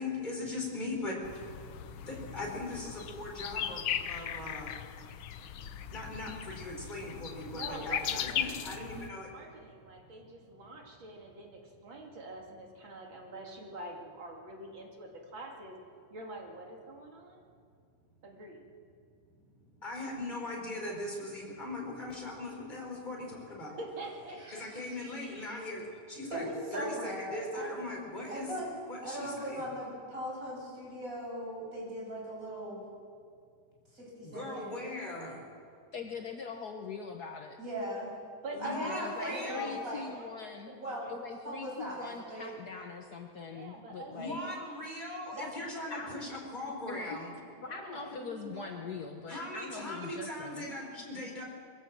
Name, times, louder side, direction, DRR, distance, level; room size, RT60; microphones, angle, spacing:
voice 1, 0.0-4.8 5.6-9.3 19.7-23.8 24.6-28.5 28.9-29.6 34.2-35.4 38.5-39.8 44.1-47.3 49.3-51.4, left 2 dB, 20° left, -1 dB, 4.6 m, -40 dB
sound 1, 1.2-9.1, left 10 dB, 80° left, 1.6 m, -38 dB
voice 2, 7.5-8.7 9.3-15.8 16.1-17.4 18.2-18.6 23.8-24.6 38.4-41.1 43.5-44.8 45.3-46.1 47.6-49.0, right 2 dB, 70° right, 0 dB, 3.3 m, -46 dB
voice 3, 24.4-25.0 25.2-25.5 26.3-27.7 28.3-28.7 29.0-32.9 33.9-34.7 37.6-38.1 38.6-40.1 40.7-41.2 41.4-42.5, equal, 40° right, -4 dB, 7.2 m, -39 dB
voice 4, 35.9-37.6 38.8-40.7 41.1-44.4 45.9-46.1 46.9-47.2 47.6-50.7, left 5 dB, 55° left, 3 dB, 1.4 m, -42 dB
22.5 x 16.0 x 7.5 m, 2.3 s
omnidirectional pair, 2.3 m